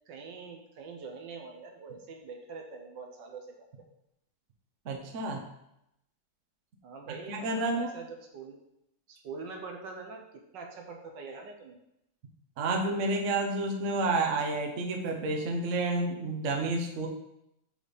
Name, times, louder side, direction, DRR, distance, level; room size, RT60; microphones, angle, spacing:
voice 1, 0.1-3.5 6.8-8.6 9.1-10.2 10.5-11.8, right 4 dB, 70° right, 2 dB, 1.4 m, -44 dB
voice 2, 4.8-5.4 7.3-7.9 12.6-17.1, right 2 dB, 50° right, 2 dB, 1.0 m, -30 dB
4.9 x 4.1 x 5.0 m, 0.81 s
omnidirectional pair, 2.1 m